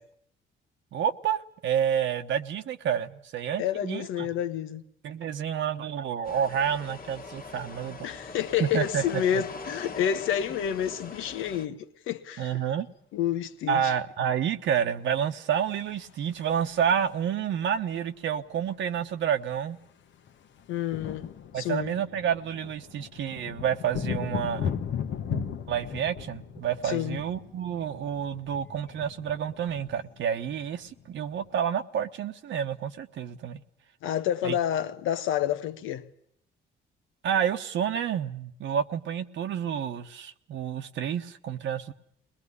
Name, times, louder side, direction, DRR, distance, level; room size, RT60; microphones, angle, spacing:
voice 1, 0.9-4.3 5.0-8.1 8.6-9.4 12.4-12.9 13.7-19.8 21.5-24.7 25.3-33.6 34.4-34.5 37.2-41.9, right 8 dB, 70° right, 1.2 m, -29 dB
voice 2, 3.6-4.8 8.0-12.6 13.1-13.9 20.7-21.3 21.5-21.9 26.8-27.2 34.0-36.0, left 10 dB, 90° left, 1.2 m, -29 dB
sound 1, 6.2-11.7, left 4 dB, 45° left, 1.6 m, -42 dB
sound 2, 15.7-17.3 18.6-18.7 18.9-19.1 19.4-31.5, left 8 dB, 70° left, 1.2 m, -38 dB
21.5 x 20.5 x 9.7 m
cardioid pair, 90°, 20 cm